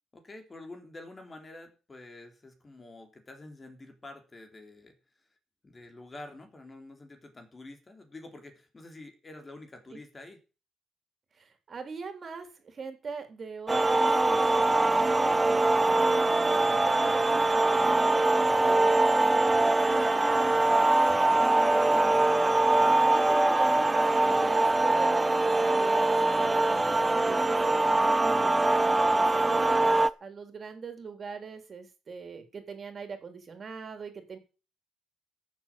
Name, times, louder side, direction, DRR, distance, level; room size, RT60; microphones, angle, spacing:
voice 1, 0.1-4.9 5.6-10.4 15.4-15.7 29.0-29.4, left 2 dB, 25° left, 5 dB, 4.0 m, -47 dB
voice 2, 11.3-22.2 22.7-26.8 27.2-34.4, right 5 dB, 45° right, 7 dB, 3.6 m, -41 dB
sound 1, 13.7-30.1, right 2 dB, 20° right, 0.7 m, -23 dB
14.0 x 7.6 x 7.6 m, 0.34 s
cardioid pair, 90°, 0 cm